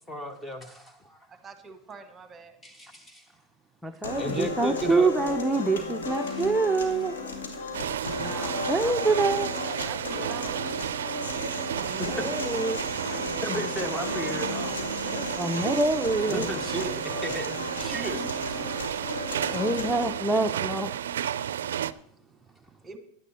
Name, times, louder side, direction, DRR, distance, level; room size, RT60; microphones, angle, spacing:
voice 1, 0.1-1.3 2.6-3.2 4.2-5.1 11.5-12.3 13.1-14.9 16.3-18.2 19.3-19.7, equal, 10° left, 9 dB, 1.4 m, -35 dB
voice 2, 1.4-2.6 8.2-9.2 9.8-10.6 15.0-15.8 17.9-18.3 21.3-23.0, right 4 dB, 20° right, 10 dB, 1.4 m, -45 dB
voice 3, 3.8-7.1 8.1-8.3 8.7-9.5 11.8-12.8 15.4-16.5 19.5-21.0, right 3 dB, 5° right, 5 dB, 0.7 m, -26 dB
sound 1, 4.0-20.0, left 3 dB, 85° left, 2.0 m, -35 dB
sound 2, 7.7-21.9, right 10 dB, 80° right, 0.4 m, -32 dB
10.5 x 9.8 x 4.3 m, 0.65 s
hypercardioid pair, 110°, 0 cm